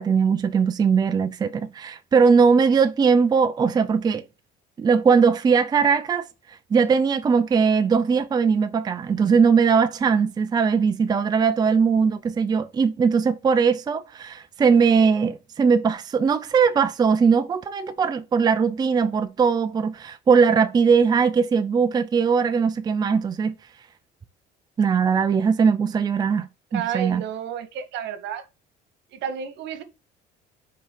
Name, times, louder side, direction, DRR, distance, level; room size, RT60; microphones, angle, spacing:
voice 1, 0.0-4.2 4.8-6.3 6.7-23.5 24.8-27.2, right 6 dB, 20° right, 0.5 m, -20 dB
voice 2, 26.7-28.4 29.1-29.8, right 9 dB, 75° right, 1.5 m, -31 dB
6.0 x 4.9 x 4.5 m
cardioid pair, 155°, 19 cm